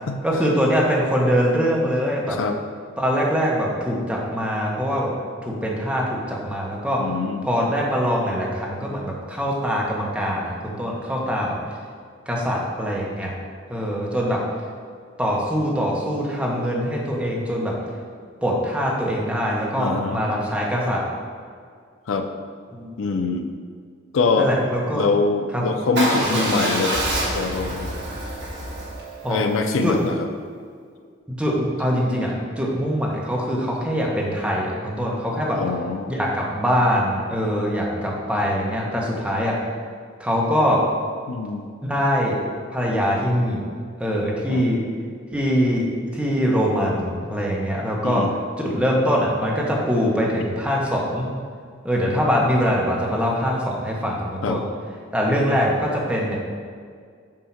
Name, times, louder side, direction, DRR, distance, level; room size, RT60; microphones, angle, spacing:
voice 1, 0.2-2.4 3.0-5.1 5.4-7.0 7.4-11.6 12.3-13.3 13.7-14.4 15.2-17.7 18.4-21.0 22.7-23.2 24.4-25.1 25.5-25.6 26.3-26.5 29.2-29.4 29.8-30.0 31.3-35.6 36.1-39.5 40.2-40.8 41.8-42.4 42.7-43.6 44.0-44.8 45.3-48.2 48.6-51.3 51.8-54.6 55.1-56.4, equal, 5° right, -3 dB, 1.0 m, -23 dB
voice 2, 7.0-7.5 19.8-20.2 22.1-22.3 23.0-23.5 24.1-24.5 24.9-27.9 29.3-30.3 35.6-36.1 41.3-41.6 44.5-44.7 48.0-48.3 54.4-54.6, left 4 dB, 80° left, 6 dB, 0.5 m, -24 dB
Motorcycle / Engine starting / Idling, 26.0-30.1, right 1 dB, 60° right, 1.6 m, -27 dB
7.2 x 2.8 x 5.7 m, 2.1 s
head